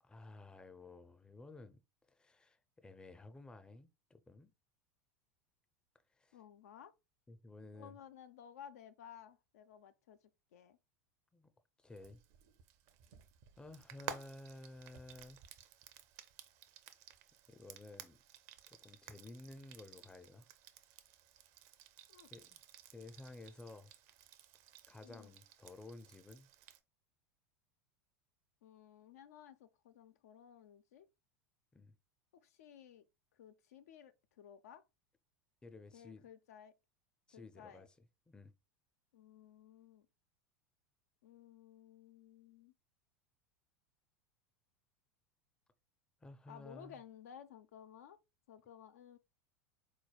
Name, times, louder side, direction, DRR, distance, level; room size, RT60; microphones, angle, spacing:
voice 1, 0.0-1.8 2.1-4.5 6.2-6.4 7.3-8.0 11.3-11.5 11.8-12.2 13.6-15.4 17.5-18.2 18.7-20.5 22.3-22.6 22.9-23.9 24.9-26.5 31.7-32.0 35.6-36.2 37.3-37.9 38.3-38.5 46.2-47.0, left 2 dB, 10° left, 0.5 m, -54 dB
voice 2, 6.3-6.9 7.7-10.2 10.5-10.8 22.1-22.3 25.0-25.3 28.6-31.1 32.3-33.1 33.3-34.8 35.9-36.7 37.3-37.9 39.1-40.1 41.2-42.7 46.5-48.2 48.5-49.2, left 9 dB, 75° left, 0.4 m, -56 dB
Frying (food), 11.9-26.8, right 9 dB, 55° right, 0.5 m, -54 dB
4.0 x 3.1 x 2.3 m
hypercardioid pair, 85°, 8 cm